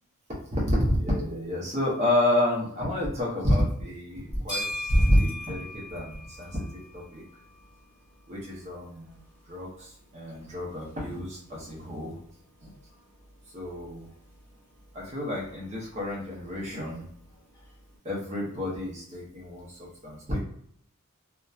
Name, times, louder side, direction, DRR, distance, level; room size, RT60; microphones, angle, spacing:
voice 1, 0.5-6.6 6.9-7.2 8.3-9.2 9.5-12.2 12.6-12.7 13.5-14.1 14.9-17.0 18.0-20.4, left 1 dB, 30° right, -4 dB, 0.7 m, -28 dB
sound 1, 4.1-18.0, left 1 dB, 20° left, 1.4 m, -44 dB
2.7 x 2.2 x 2.3 m, 0.66 s
head